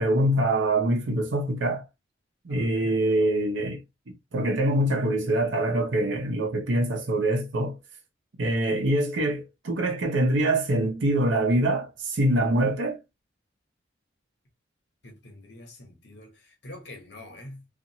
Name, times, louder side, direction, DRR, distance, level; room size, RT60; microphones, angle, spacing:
voice 1, 0.0-1.8 2.4-3.8 4.3-7.8 8.4-13.0, right 1 dB, 85° right, 0.7 m, -24 dB
voice 2, 2.5-3.0 15.0-17.7, left 1 dB, 70° left, 1.0 m, -45 dB
2.7 x 2.5 x 2.7 m
head